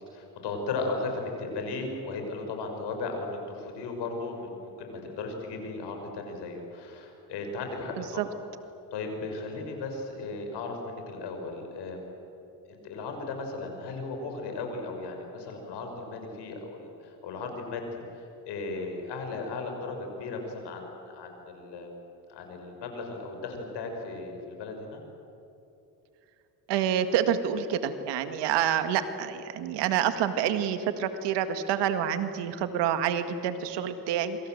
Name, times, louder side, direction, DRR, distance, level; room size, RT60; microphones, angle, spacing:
voice 1, 0.1-8.4 8.9-12.2 12.7-21.9 22.3-25.0, left 3 dB, 75° left, 4 dB, 6.2 m, -36 dB
voice 2, 8.0-8.3 26.7-34.4, right 9 dB, 90° right, 9 dB, 2.0 m, -28 dB
27.0 x 26.0 x 7.9 m, 2.9 s
cardioid pair, 85°, 41 cm